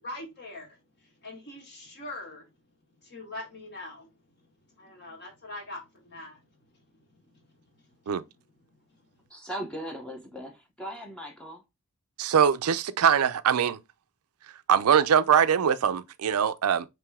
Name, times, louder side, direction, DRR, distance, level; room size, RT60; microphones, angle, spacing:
voice 1, 0.0-2.5 3.0-4.1 4.4-4.5 4.7-9.2, left 2 dB, 50° left, 1.7 m, -44 dB
voice 2, 9.3-11.6, equal, 5° left, 0.6 m, -38 dB
voice 3, 12.2-13.8 14.7-16.9, right 8 dB, 70° right, 0.4 m, -22 dB
4.7 x 3.1 x 3.5 m
head